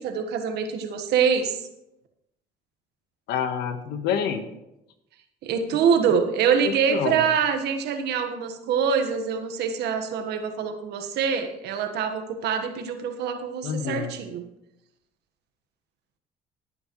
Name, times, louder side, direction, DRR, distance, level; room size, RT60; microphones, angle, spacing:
voice 1, 0.0-1.6 5.4-14.4, right 6 dB, 80° right, 7 dB, 1.4 m, -25 dB
voice 2, 3.3-4.5 6.6-7.2 13.6-14.1, left 8 dB, 85° left, 8 dB, 1.3 m, -28 dB
17.5 x 8.8 x 3.1 m, 0.87 s
cardioid pair, 110°, 17 cm